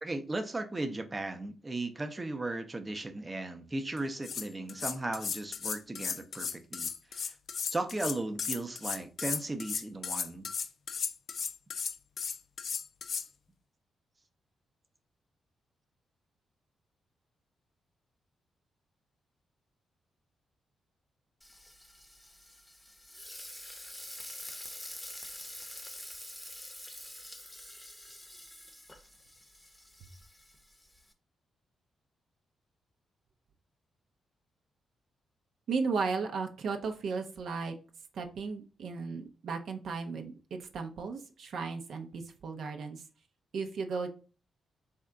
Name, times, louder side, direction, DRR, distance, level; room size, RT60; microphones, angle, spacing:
voice 1, 0.0-7.3 7.7-10.5, right 2 dB, 25° right, 0.5 m, -36 dB
sound 1, 4.0-4.1 4.2-13.3, left 6 dB, 60° left, 0.3 m, -35 dB
Frying (food), 21.4-31.1, left 1 dB, 10° left, 0.7 m, -47 dB
voice 2, 35.7-37.7 38.1-40.3 40.7-43.0 43.5-44.1, right 4 dB, 70° right, 0.5 m, -35 dB
3.5 x 2.2 x 3.6 m
cardioid pair, 60°, 0 cm